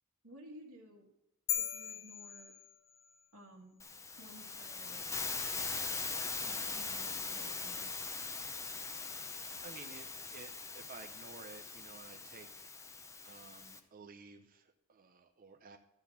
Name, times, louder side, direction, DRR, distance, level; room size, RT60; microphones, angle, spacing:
voice 1, 0.2-1.1 1.5-2.5 3.3-3.8 4.2-5.1 6.4-7.9, equal, 70° right, -3 dB, 1.7 m, -55 dB
sound 1, 1.5-3.2, left 10 dB, 55° left, 0.9 m, -39 dB
Hiss, 3.8-13.8, left 4 dB, 15° left, 0.6 m, -41 dB
voice 2, 9.6-12.7 13.2-15.8, right 4 dB, 40° right, 5 dB, 0.6 m, -53 dB
12.5 x 4.2 x 6.8 m, 0.91 s
head